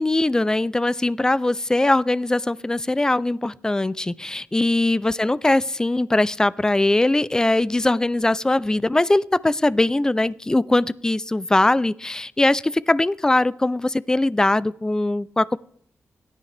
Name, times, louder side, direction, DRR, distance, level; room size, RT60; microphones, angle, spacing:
voice 1, 0.0-15.6, left 2 dB, 15° left, 20 dB, 0.4 m, -21 dB
17.5 x 10.5 x 3.3 m, 0.64 s
wide cardioid pair, 105°, 5 cm